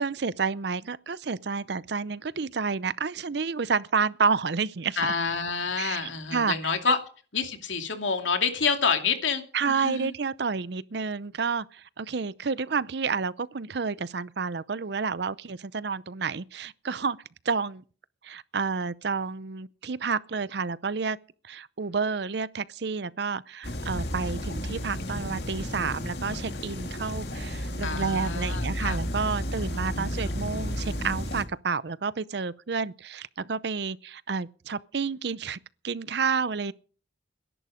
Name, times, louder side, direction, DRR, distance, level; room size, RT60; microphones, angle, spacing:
voice 1, 0.0-5.1 5.8-6.6 6.9-7.0 9.5-17.2 17.5-17.8 18.2-21.2 21.4-35.6 35.8-36.7, right 5 dB, 60° right, 0.6 m, -30 dB
voice 2, 5.0-7.0 7.3-10.1 27.8-29.0, left 5 dB, 75° left, 2.5 m, -28 dB
sound 1, 23.6-31.4, equal, 55° left, 2.3 m, -32 dB
19.5 x 11.0 x 5.1 m
head